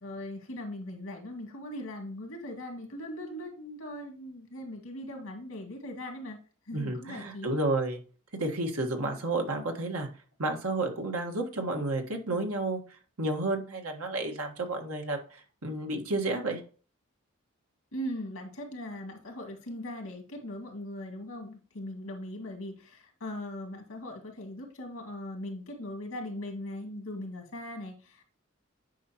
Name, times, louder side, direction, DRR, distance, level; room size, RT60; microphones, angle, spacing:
voice 1, 0.0-6.4 6.7-7.6 17.9-28.2, left 1 dB, 85° left, 3 dB, 2.0 m, -40 dB
voice 2, 6.7-8.0 8.4-10.1 10.4-12.8 13.2-16.6, right 2 dB, 90° right, 3 dB, 1.5 m, -31 dB
9.3 x 5.3 x 2.9 m, 0.39 s
head